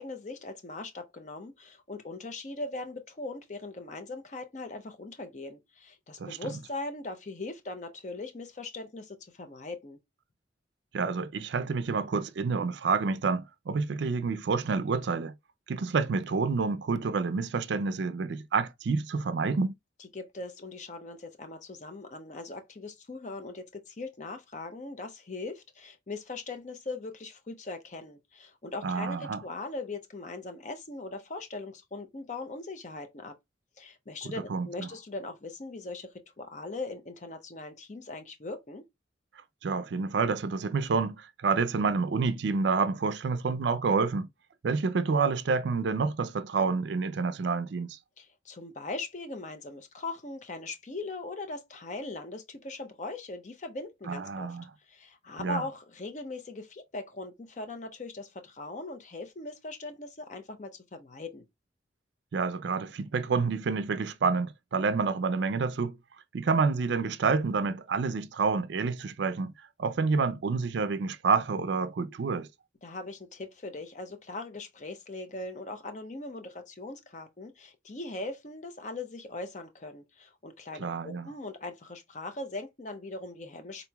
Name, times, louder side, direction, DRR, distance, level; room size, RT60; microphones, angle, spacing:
voice 1, 0.0-10.0 20.0-33.4 33.8-38.8 48.2-54.6 54.9-61.4 72.8-83.9, left 2 dB, 40° left, 0.6 m, -40 dB
voice 2, 10.9-15.3 15.7-19.7 28.8-29.4 34.5-34.9 39.6-44.3 44.6-48.0 54.1-54.6 55.4-55.6 62.3-66.0 66.3-69.5 69.8-72.5 80.8-81.3, right 4 dB, 70° right, 0.4 m, -28 dB
3.9 x 2.9 x 2.2 m
head